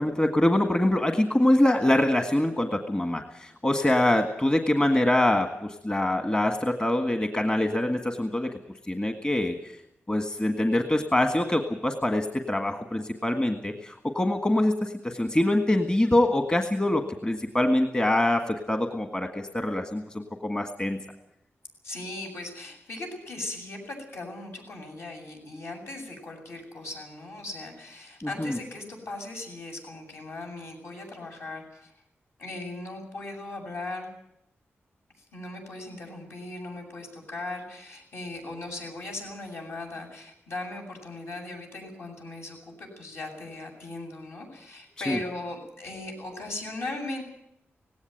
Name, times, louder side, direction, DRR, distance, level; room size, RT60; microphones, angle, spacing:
voice 1, 0.0-8.5 8.9-9.5 10.1-21.0 28.2-28.6 45.1-45.2, left 1 dB, 20° left, 5 dB, 1.7 m, -24 dB
voice 2, 21.8-31.9 32.4-34.1 35.2-47.2, left 2 dB, 65° left, 2 dB, 7.9 m, -38 dB
18.5 x 17.0 x 9.2 m, 0.79 s
wide cardioid pair, 140°, 5 cm